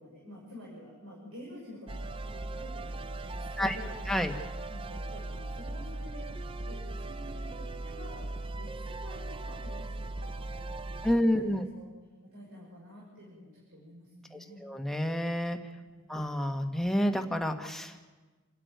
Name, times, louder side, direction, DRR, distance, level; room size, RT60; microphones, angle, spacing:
voice 1, 0.0-3.9 4.7-6.3 6.6-11.5 11.7-11.9 12.2-14.6 15.8-16.1, left 1 dB, 80° right, -4 dB, 6.1 m, -49 dB
sound 1, 1.9-11.1, right 2 dB, 25° right, 0.6 m, -38 dB
voice 2, 11.0-11.7 14.3-15.6 16.1-18.1, equal, ahead, 4 dB, 1.5 m, -29 dB
28.0 x 11.5 x 9.3 m, 1.3 s
head